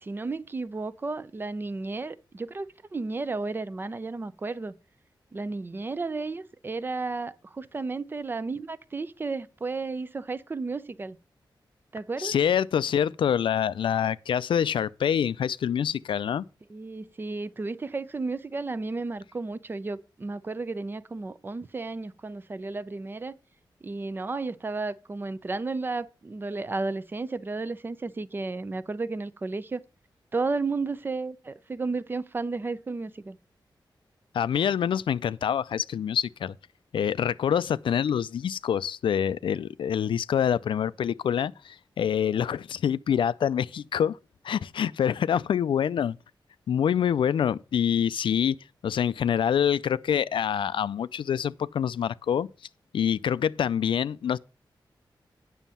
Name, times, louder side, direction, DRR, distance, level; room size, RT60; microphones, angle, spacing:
voice 1, 0.0-4.7 5.3-11.2 11.9-12.3 16.7-23.4 23.8-29.8 30.3-33.4, right 3 dB, 25° right, 0.5 m, -33 dB
voice 2, 12.2-16.4 34.3-36.5 36.9-44.2 44.4-46.2 46.7-48.6 48.8-52.5 52.9-54.4, left 8 dB, 90° left, 0.4 m, -26 dB
9.2 x 6.2 x 5.6 m
wide cardioid pair, 170°, 8 cm